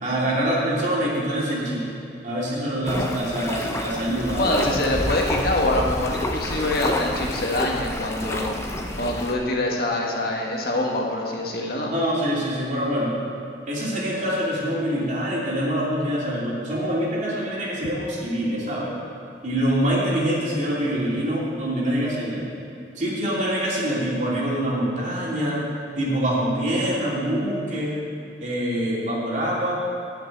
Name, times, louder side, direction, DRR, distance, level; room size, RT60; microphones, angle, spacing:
voice 1, 0.0-2.0 2.2-4.7 11.9-13.1 13.7-19.0 19.4-22.5 23.0-25.6 25.9-28.0 28.4-29.8, equal, 45° right, -6 dB, 2.8 m, -25 dB
sound 1, 2.8-9.3, left 1 dB, 15° left, 0.8 m, -29 dB
voice 2, 4.4-8.6 9.0-11.9, left 1 dB, 60° left, -1 dB, 1.5 m, -25 dB
10.5 x 6.0 x 8.8 m, 2.7 s
head